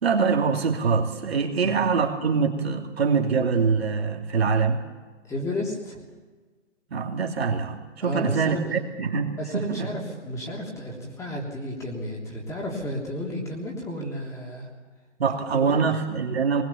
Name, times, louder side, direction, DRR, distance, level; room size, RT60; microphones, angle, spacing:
voice 1, 0.0-4.8 6.9-9.9 15.2-16.6, right 5 dB, 60° right, 2 dB, 2.9 m, -24 dB
voice 2, 5.3-6.0 8.0-8.8 9.4-14.7 15.5-15.8, left 1 dB, 10° left, -1 dB, 3.2 m, -32 dB
22.0 x 20.5 x 7.1 m, 1.4 s
figure-of-eight pair, 140°, 36 cm